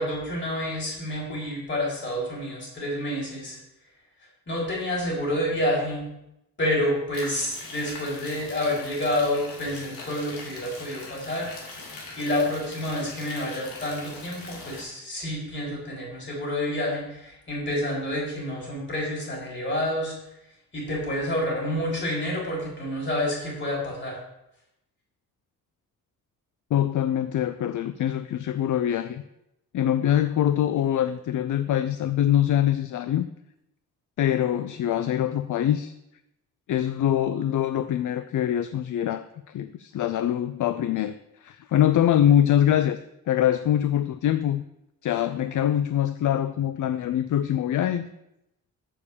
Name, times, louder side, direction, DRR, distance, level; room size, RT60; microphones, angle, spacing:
voice 1, 0.0-3.6 4.5-6.0 6.6-11.5 11.7-11.9 12.2-20.1 20.7-24.2, left 1 dB, 35° left, -4 dB, 4.3 m, -28 dB
sound 1, 7.1-14.8, left 3 dB, 85° left, 3.0 m, -41 dB
voice 2, 26.7-29.2 29.7-33.3 34.2-35.9 36.7-41.1 41.4-43.0 43.3-44.6 45.0-48.1, left 11 dB, 60° left, 11 dB, 0.5 m, -24 dB
7.4 x 7.0 x 6.8 m, 0.85 s
wide cardioid pair, 135°, 34 cm